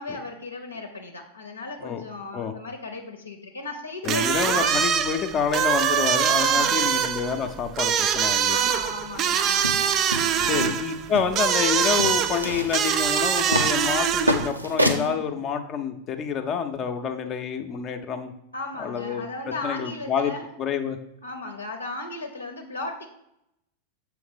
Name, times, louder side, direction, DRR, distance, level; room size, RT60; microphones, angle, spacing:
voice 1, 0.0-4.7 6.4-6.9 8.5-10.0 10.3-10.9 15.0-15.2 18.5-20.5 21.2-23.1, left 2 dB, 80° left, 3 dB, 0.7 m, -36 dB
sound 1, 4.0-14.5, right 8 dB, 35° right, 0.3 m, -24 dB
voice 2, 4.1-8.6 10.4-18.3 18.8-19.2 19.6-20.3 20.6-21.0, left 7 dB, 30° left, 6 dB, 0.5 m, -28 dB
sound 2, 9.5-15.1, equal, 85° right, 0.6 m, -29 dB
7.1 x 3.2 x 4.9 m, 0.81 s
figure-of-eight pair, 90°, 0 cm